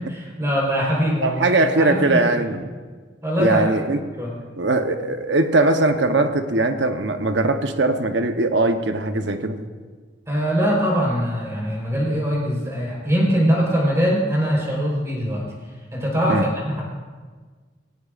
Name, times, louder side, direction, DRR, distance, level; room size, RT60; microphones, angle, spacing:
voice 1, 0.0-1.4 1.8-2.5 3.2-3.6 4.1-4.4 10.3-15.5 15.9-16.8, equal, 15° right, -3 dB, 4.1 m, -22 dB
voice 2, 1.2-2.7 3.4-4.0 4.6-9.6 16.3-16.4, right 2 dB, 70° right, 7 dB, 1.0 m, -20 dB
18.0 x 17.0 x 2.5 m, 1.5 s
head